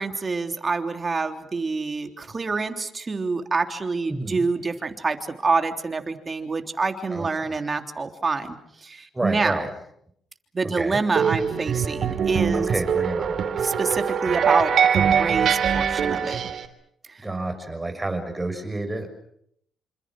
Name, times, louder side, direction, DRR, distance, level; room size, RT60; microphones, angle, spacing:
voice 1, 0.0-9.6 10.5-12.7 13.6-16.4 17.1-17.2, right 4 dB, 30° right, 6 dB, 3.3 m, -27 dB
voice 2, 4.1-4.4 7.1-7.2 9.1-9.7 10.6-11.0 12.5-13.4 17.2-19.1, right 2 dB, 15° right, 7 dB, 6.3 m, -29 dB
sound 1, 11.2-16.7, right 7 dB, 60° right, 3.3 m, -23 dB
27.0 x 27.0 x 6.3 m, 0.72 s
cardioid pair, 90°, 0 cm